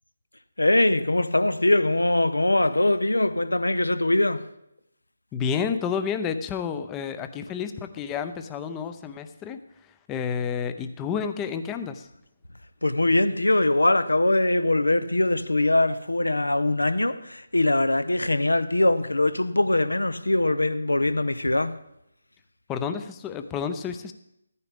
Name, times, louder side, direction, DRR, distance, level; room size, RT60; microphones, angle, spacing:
voice 1, 0.6-4.5 12.8-21.8, left 2 dB, 80° left, 0.7 m, -22 dB
voice 2, 5.3-12.1 22.7-24.1, left 6 dB, 15° left, 0.6 m, -30 dB
14.0 x 9.6 x 3.5 m
figure-of-eight pair, 150°, 0 cm